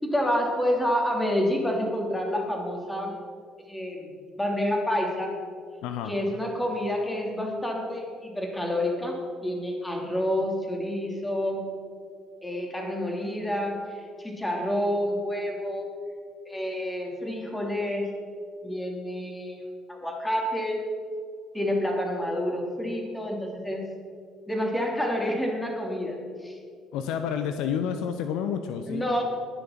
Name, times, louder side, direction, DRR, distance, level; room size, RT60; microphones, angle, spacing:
voice 1, 0.0-3.1 3.7-4.1 4.4-5.3 6.1-11.6 12.4-15.9 16.5-18.1 18.6-19.6 19.9-20.8 21.5-23.8 24.5-26.6 28.9-29.2, equal, 10° left, 1 dB, 3.2 m, -28 dB
voice 2, 5.8-6.1 26.9-29.1, left 8 dB, 65° left, 8 dB, 0.6 m, -29 dB
20.0 x 7.1 x 5.9 m, 2.2 s
figure-of-eight pair, 50°, 0 cm